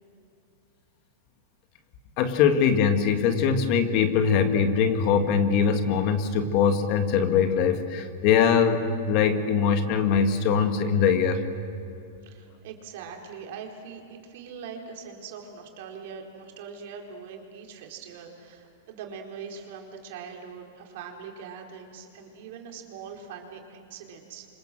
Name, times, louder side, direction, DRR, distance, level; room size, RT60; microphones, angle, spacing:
voice 1, 2.2-11.4, left 6 dB, 40° left, 7 dB, 1.9 m, -22 dB
voice 2, 12.2-24.5, right 6 dB, 60° right, 2 dB, 4.3 m, -42 dB
29.5 x 26.0 x 7.7 m, 2.6 s
supercardioid pair, 155°, 0 cm